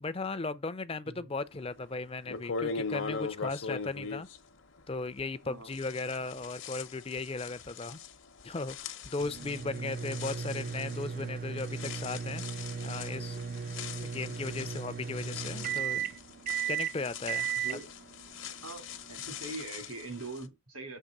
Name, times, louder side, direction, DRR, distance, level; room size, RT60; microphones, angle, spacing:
voice 1, 0.0-4.3 4.9-8.0 8.4-12.4 12.8-13.4 13.6-16.1 16.7-17.8, left 3 dB, 25° left, 0.5 m, -37 dB
sound 1, 1.7-1.8 2.3-5.4 5.7-20.4, left 5 dB, 60° left, 0.9 m, -41 dB
voice 2, 5.4-5.7 17.5-17.9 18.6-21.0, right 2 dB, 80° right, 2.6 m, -42 dB
sound 2, 9.2-19.5, right 7 dB, 40° right, 0.3 m, -36 dB
6.6 x 3.4 x 6.0 m
head